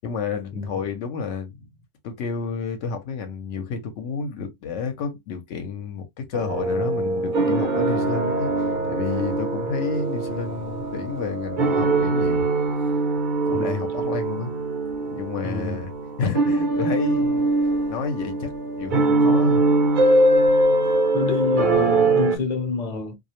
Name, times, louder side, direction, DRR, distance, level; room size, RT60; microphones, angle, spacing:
voice 1, 0.0-1.7 2.0-8.5 8.9-12.5 13.5-14.5 15.1-15.9 16.2-17.5 17.9-18.5 18.8-19.6, left 5 dB, 75° left, 0.9 m, -30 dB
sound 1, 6.3-22.4, right 2 dB, 50° right, 0.7 m, -22 dB
voice 2, 15.4-15.8 21.1-23.2, left 4 dB, 40° left, 0.7 m, -27 dB
2.3 x 2.0 x 2.8 m
omnidirectional pair, 1.2 m